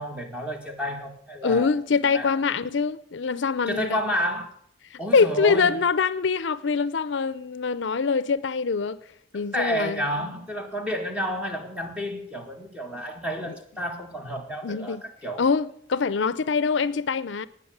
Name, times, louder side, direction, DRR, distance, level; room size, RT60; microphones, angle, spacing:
voice 1, 0.0-1.7 2.1-2.4 3.7-4.5 5.0-5.7 9.3-15.4, equal, 5° right, 2.0 m, -30 dB
voice 2, 1.4-4.0 4.9-9.0 9.3-10.3 14.6-15.0 15.4-17.5, left 5 dB, 75° left, 0.5 m, -24 dB
18.5 x 6.2 x 8.0 m
head